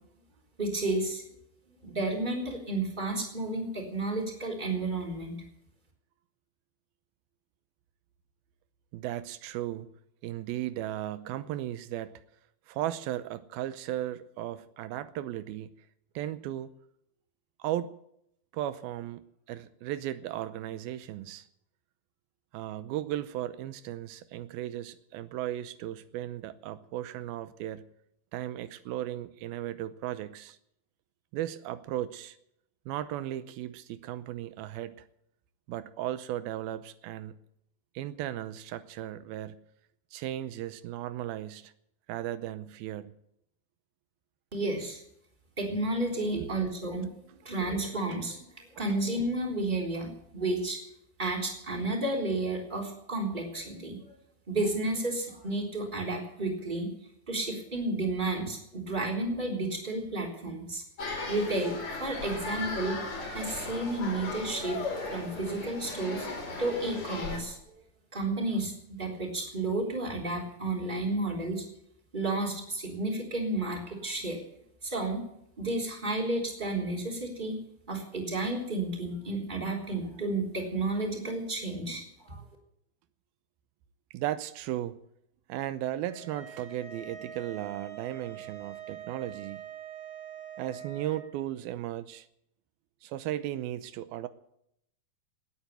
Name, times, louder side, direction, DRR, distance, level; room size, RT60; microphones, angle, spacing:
voice 1, 0.6-1.2 1.8-5.3 44.5-45.0 45.6-47.1 47.5-48.5 48.7-50.8 51.2-54.1 54.5-56.9 57.3-60.8 61.3-63.0 63.3-64.8 65.1-67.6 68.1-71.6 72.1-74.4 74.8-75.2 75.6-77.6 77.9-82.4, right 2 dB, 15° right, 0 dB, 3.6 m, -32 dB
voice 2, 8.9-9.9 10.2-12.2 12.7-15.7 16.2-16.7 17.6-17.9 18.5-21.4 22.5-27.9 28.3-30.6 31.3-32.4 32.9-35.0 35.7-37.3 38.0-39.6 40.1-41.7 42.1-43.1 46.3-46.6 84.1-85.0 85.5-89.6 90.6-92.3 93.0-94.3, right 13 dB, 90° right, 13 dB, 2.7 m, -36 dB
sound 1, 61.0-67.4, left 3 dB, 50° left, 5.1 m, -37 dB
sound 2, 86.1-91.2, right 8 dB, 65° right, 7.6 m, -44 dB
19.0 x 9.0 x 8.3 m, 0.75 s
omnidirectional pair, 4.2 m